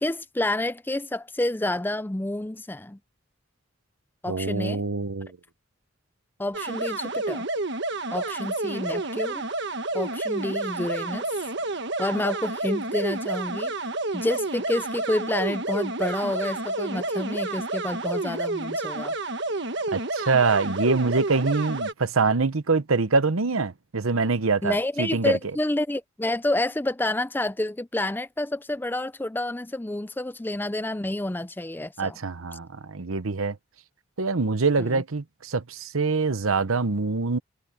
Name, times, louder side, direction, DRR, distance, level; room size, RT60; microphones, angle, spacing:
voice 1, 0.0-3.0 4.2-4.8 6.4-7.5 8.1-9.4 9.9-11.2 12.0-13.7 14.1-19.1 24.6-32.2 34.8-35.0, left 1 dB, 10° left, 0.4 m, -29 dB
voice 2, 4.3-5.3 19.9-25.4 32.0-33.6 34.2-37.4, right 4 dB, 85° right, 1.0 m, -24 dB
sound 1, 6.5-21.9, right 2 dB, 55° right, 1.5 m, -30 dB
head